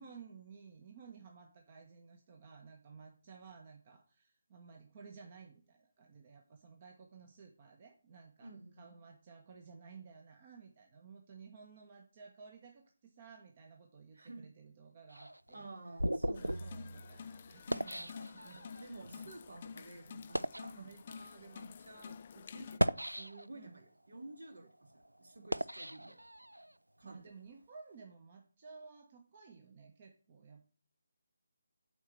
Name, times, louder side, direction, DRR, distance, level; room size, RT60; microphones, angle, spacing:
voice 1, 0.0-15.7 16.4-19.3 20.7-21.0 23.5-23.8 27.0-30.7, right 5 dB, 35° right, 2 dB, 1.4 m, -55 dB
voice 2, 8.4-8.9 14.1-14.5 15.5-16.8 18.8-26.2 27.0-27.3, right 2 dB, 65° right, 4 dB, 2.6 m, -52 dB
sound 1, 15.1-18.8 19.5-19.7 20.2-20.7 21.5-21.7 22.6-23.7 24.2-26.7, right 1 dB, 90° right, 0.5 m, -37 dB
sound 2, 16.3-22.8, left 6 dB, 35° left, 0.4 m, -50 dB
8.0 x 5.0 x 7.1 m, 0.39 s
figure-of-eight pair, 150°, 0 cm